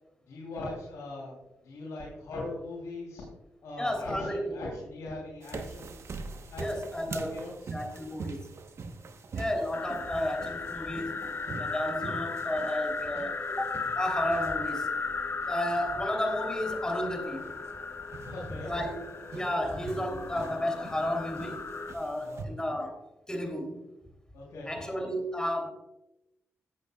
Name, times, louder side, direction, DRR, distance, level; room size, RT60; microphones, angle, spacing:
voice 1, 0.3-3.2 3.6-5.9 6.5-6.6 7.1-7.7 18.2-18.7 22.2-22.4 24.3-24.7, left 2 dB, 80° left, -5 dB, 3.1 m, -40 dB
voice 2, 3.7-4.6 6.6-7.4 7.7-8.5 9.3-11.2 11.6-14.9 15.5-17.5 18.6-19.0 19.3-21.7 21.9-23.0 23.3-23.8 24.6-25.7, left 1 dB, 15° left, 3 dB, 3.0 m, -32 dB
sound 1, 5.4-22.4, right 4 dB, 60° right, 1.0 m, -44 dB
sound 2, 9.7-21.9, left 4 dB, 45° left, 0.8 m, -36 dB
15.0 x 8.1 x 2.3 m, 0.92 s
cardioid pair, 60°, 5 cm